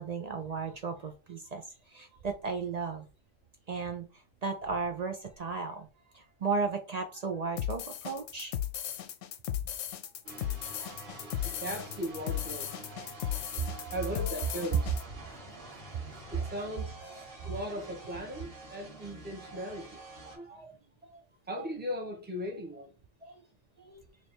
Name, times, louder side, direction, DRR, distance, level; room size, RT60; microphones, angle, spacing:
voice 1, 0.0-3.1 3.7-5.9 6.1-8.6 16.1-16.5 17.4-17.5 19.4-19.6 20.2-20.7 21.0-21.2 21.6-21.7 23.2-23.3 23.8-24.1, right 4 dB, 65° right, 0.4 m, -35 dB
sound 1, 7.6-15.0, left 11 dB, 75° left, 0.9 m, -36 dB
sound 2, 10.2-20.4, right 1 dB, 45° right, 1.7 m, -47 dB
voice 2, 11.4-12.7 13.7-14.9 16.3-20.0 20.3-20.5 21.5-22.9, equal, 10° right, 1.0 m, -38 dB
3.2 x 2.9 x 4.2 m
omnidirectional pair, 1.3 m